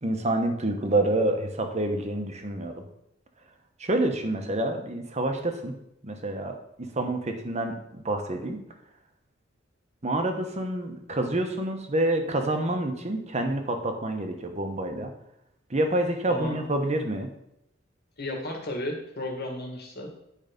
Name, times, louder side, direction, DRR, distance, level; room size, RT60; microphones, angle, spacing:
voice 1, 0.0-2.8 3.8-5.7 6.0-8.6 10.0-15.1 15.7-17.3, right 1 dB, 35° right, 5 dB, 1.1 m, -28 dB
voice 2, 18.2-20.1, left 1 dB, 55° left, 1 dB, 1.9 m, -33 dB
9.2 x 4.8 x 5.2 m, 0.79 s
head